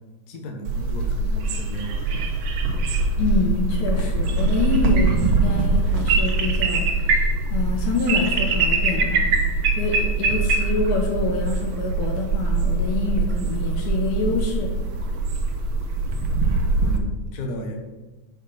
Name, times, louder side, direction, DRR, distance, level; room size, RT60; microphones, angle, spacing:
voice 1, 0.3-2.5 16.8-17.8, left 1 dB, 45° left, 2 dB, 1.4 m, -34 dB
sound 1, 0.7-17.0, right 3 dB, 65° right, 2.1 m, -22 dB
voice 2, 3.2-7.2 7.5-9.3 9.8-14.7, left 3 dB, 85° left, -1 dB, 3.3 m, -26 dB
10.5 x 5.1 x 5.9 m, 1.2 s
omnidirectional pair, 3.3 m